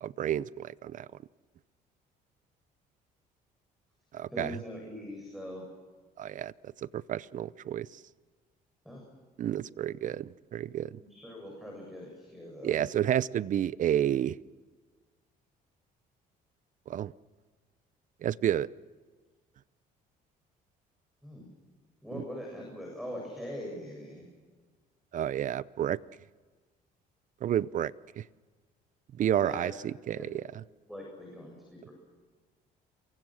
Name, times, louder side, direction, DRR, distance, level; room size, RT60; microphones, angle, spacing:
voice 1, 0.0-1.1 4.1-4.6 6.2-7.9 9.4-11.0 12.6-14.4 16.9-17.1 18.2-18.7 25.1-26.0 27.4-28.2 29.2-30.4, right 10 dB, 50° right, 19 dB, 0.7 m, -30 dB
voice 2, 4.3-5.7 8.8-9.0 11.0-12.8 21.2-21.5 22.0-24.3 29.3-29.7 30.1-30.3 30.9-31.9, left 1 dB, ahead, 0 dB, 7.9 m, -42 dB
28.0 x 23.5 x 6.5 m, 1.4 s
cardioid pair, 110°, 17 cm